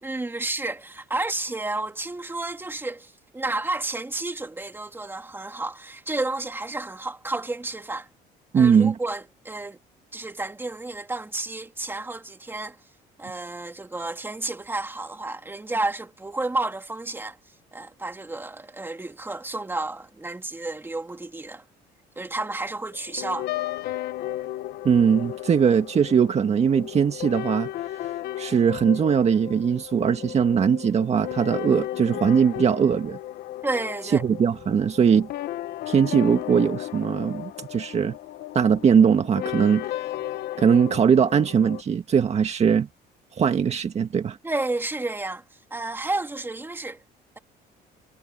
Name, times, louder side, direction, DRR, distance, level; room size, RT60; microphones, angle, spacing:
voice 1, 0.0-8.1 8.5-9.8 10.1-12.8 13.2-17.4 17.7-21.6 22.2-23.5 33.6-34.2 44.4-45.4 45.7-47.0, right 2 dB, 15° right, 2.5 m, -31 dB
voice 2, 8.5-9.0 24.8-27.7 28.4-33.2 34.1-35.3 35.9-38.1 38.5-39.9 40.6-42.9 43.4-44.4, right 7 dB, 40° right, 1.8 m, -20 dB
sound 1, 22.9-41.8, left 14 dB, 75° left, 1.1 m, -35 dB
cardioid pair, 110°, 17 cm